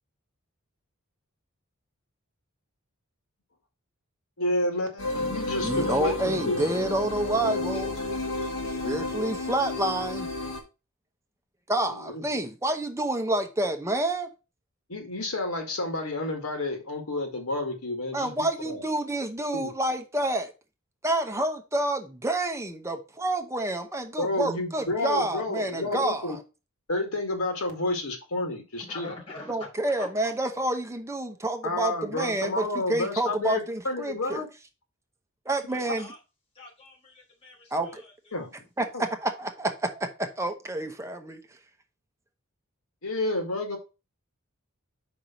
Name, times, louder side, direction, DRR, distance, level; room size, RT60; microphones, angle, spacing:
voice 1, 4.4-6.6 11.9-12.4 14.9-18.8 19.5-19.7 24.2-26.4 26.9-29.1 31.6-34.5 38.3-38.5 38.9-39.0 43.0-43.8, left 2 dB, 85° left, 2.1 m, -30 dB
sound 1, 5.0-10.6, left 2 dB, 60° left, 2.1 m, -31 dB
voice 2, 5.6-7.9 8.6-10.3 11.7-14.3 18.1-20.5 21.0-26.4 29.5-34.4 35.5-36.1 37.7-38.0 38.8-38.9 39.2-41.4, right 1 dB, 15° right, 0.9 m, -28 dB
voice 3, 28.8-29.7 30.0-30.1 35.7-36.2 36.5-38.4, left 3 dB, 25° left, 3.1 m, -44 dB
5.2 x 4.8 x 5.7 m
head